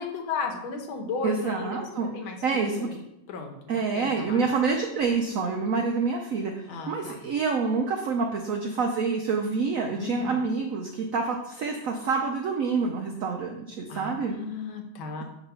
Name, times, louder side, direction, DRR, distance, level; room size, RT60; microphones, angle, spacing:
voice 1, 0.0-2.9 3.3-4.4 6.7-7.2 10.0-10.3 13.9-15.2, left 4 dB, 85° left, 3 dB, 1.7 m, -35 dB
voice 2, 1.2-2.9 3.7-14.4, right 4 dB, 85° right, 2 dB, 0.7 m, -27 dB
7.6 x 3.0 x 5.5 m, 0.85 s
omnidirectional pair, 2.2 m